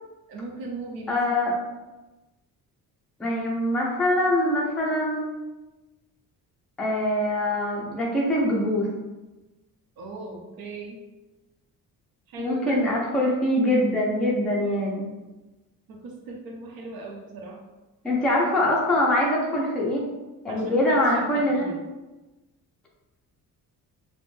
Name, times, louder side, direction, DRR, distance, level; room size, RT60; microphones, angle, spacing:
voice 1, 0.3-1.2 10.0-11.0 12.3-12.8 15.9-17.6 20.5-21.8, right 3 dB, 85° right, 1 dB, 0.6 m, -37 dB
voice 2, 1.1-1.6 3.2-5.3 6.8-8.9 12.4-15.1 18.0-20.0 20.4-21.7, left 1 dB, 5° left, -4 dB, 0.3 m, -23 dB
2.5 x 2.1 x 3.1 m, 1.1 s
cardioid pair, 150°, 35 cm